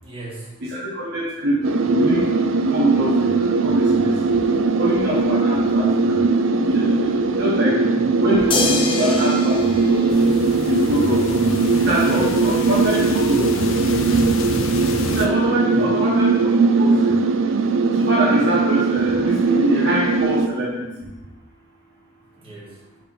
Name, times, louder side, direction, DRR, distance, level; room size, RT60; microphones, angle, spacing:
voice 1, 0.0-0.6 7.7-8.1 15.6-16.2 22.4-22.8, right 1 dB, 25° right, -7 dB, 1.8 m, -38 dB
voice 2, 0.6-4.1 4.8-6.2 6.6-7.8 8.2-10.1 10.7-13.7 14.1-14.2 15.1-17.2 17.9-21.1, equal, 55° right, -6 dB, 1.0 m, -24 dB
sound 1, 1.6-20.5, right 4 dB, 70° right, 0.4 m, -19 dB
sound 2, 8.5-11.0 12.7-12.8, left 3 dB, 25° left, 0.6 m, -26 dB
sound 3, 10.1-15.3, left 3 dB, 75° left, 0.5 m, -30 dB
4.6 x 3.9 x 5.5 m, 1.0 s
head